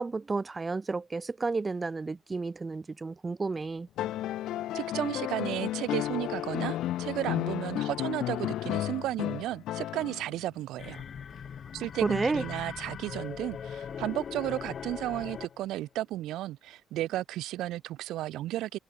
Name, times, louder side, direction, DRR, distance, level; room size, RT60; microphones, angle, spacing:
voice 1, 0.0-3.9 12.0-12.4, right 3 dB, 25° right, 0.4 m, -31 dB
sound 1, 4.0-10.4 11.9-12.0, left 13 dB, 85° left, 0.4 m, -33 dB
voice 2, 4.7-11.0 11.7-18.8, right 15 dB, 90° right, 0.4 m, -34 dB
sound 2, 10.8-15.7, left 7 dB, 50° left, 0.9 m, -40 dB
cardioid pair, 90°, 0 cm